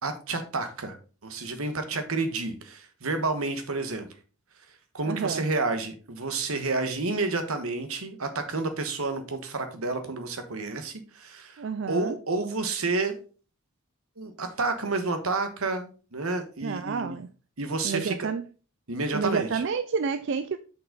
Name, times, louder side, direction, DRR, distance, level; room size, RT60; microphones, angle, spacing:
voice 1, 0.0-1.0 1.2-4.1 4.9-11.6 11.9-13.1 14.2-17.2 17.6-18.3 18.9-19.6, right 3 dB, 75° right, 1.3 m, -30 dB
voice 2, 5.0-5.4 11.6-12.2 16.6-17.3 17.8-18.4 19.1-20.6, right 5 dB, 55° right, 0.4 m, -29 dB
6.7 x 5.4 x 3.9 m
head